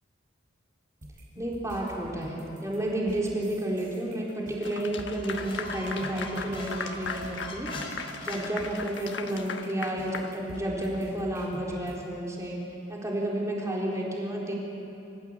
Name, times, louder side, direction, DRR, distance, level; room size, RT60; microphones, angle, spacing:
sound 1, 1.0-11.9, equal, 45° right, 7.0 m, -45 dB
voice 1, 1.4-12.6 12.9-14.5, right 1 dB, 15° right, -3 dB, 4.1 m, -31 dB
Clapping / Applause, 4.6-11.0, left 5 dB, 70° left, 1.3 m, -38 dB
Squeak, 5.1-9.1, left 1 dB, 30° left, 4.2 m, -42 dB
28.0 x 15.0 x 8.5 m, 2.8 s
head